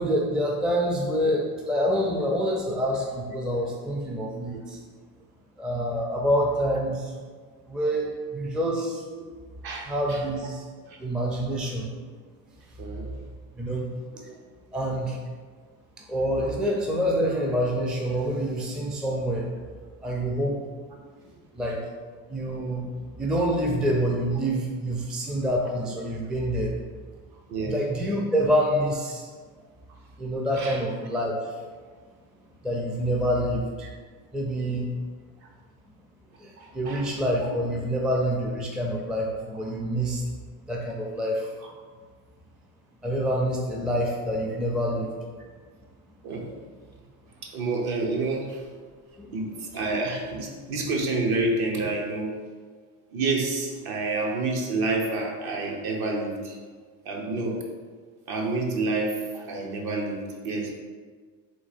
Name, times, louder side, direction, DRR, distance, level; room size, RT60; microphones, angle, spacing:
voice 1, 0.0-4.8 5.6-7.1 7.7-9.0 9.9-10.6 11.0-11.9 13.6-13.9 14.1-14.2 14.7-15.2 16.1-19.5 20.0-20.6 21.3-21.8 22.3-26.8 27.6-29.3 30.2-31.4 32.6-33.6 34.3-34.9 36.4-40.2 40.7-41.5 43.0-45.1 49.2-49.3, equal, ahead, -1 dB, 0.4 m, -27 dB
voice 2, 9.6-10.2 10.9-11.0 12.8-13.1 14.2-14.4 27.5-27.7 30.6-30.8 36.6-37.0 41.6-41.7 46.2-46.4 47.5-48.6 49.3-52.3 53.1-56.5 57.0-57.6 58.3-60.7, right 3 dB, 55° right, 0 dB, 1.0 m, -28 dB
3.9 x 2.8 x 4.2 m, 1.5 s
supercardioid pair, 100°, 43 cm